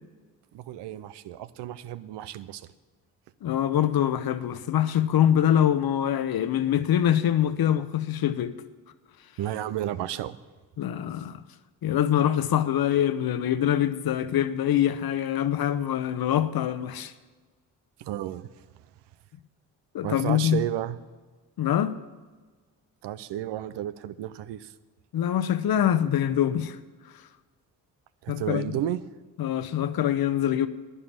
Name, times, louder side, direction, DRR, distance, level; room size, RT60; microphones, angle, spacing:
voice 1, 0.5-2.7 9.4-10.4 18.0-18.5 20.0-21.0 23.0-24.7 28.2-29.0, right 12 dB, 75° right, 0.7 m, -32 dB
voice 2, 3.4-8.6 10.8-11.4 11.8-17.1 19.9-20.6 21.6-21.9 25.1-26.8 28.3-28.7 29.4-30.7, left 10 dB, 55° left, 1.0 m, -24 dB
11.0 x 9.7 x 7.3 m
supercardioid pair, 55°, 43 cm